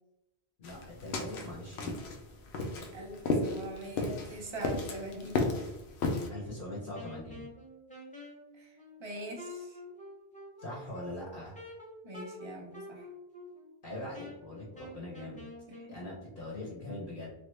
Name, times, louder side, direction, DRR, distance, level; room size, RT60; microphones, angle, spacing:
sound 1, 0.6-6.3, left 3 dB, 85° left, 0.8 m, -33 dB
voice 1, 0.6-1.9 6.3-7.5 10.6-11.6 13.8-15.4 15.9-17.3, left 1 dB, 60° left, -5 dB, 1.0 m, -42 dB
voice 2, 2.9-5.4 8.6-9.8 12.0-13.1 15.7-16.0, right 1 dB, 35° right, 1 dB, 0.6 m, -43 dB
Wind instrument woodwind instrument, 6.9-15.9, left 1 dB, 10° left, 0.5 m, -48 dB
3.0 x 2.4 x 3.2 m, 0.91 s
omnidirectional pair, 1.1 m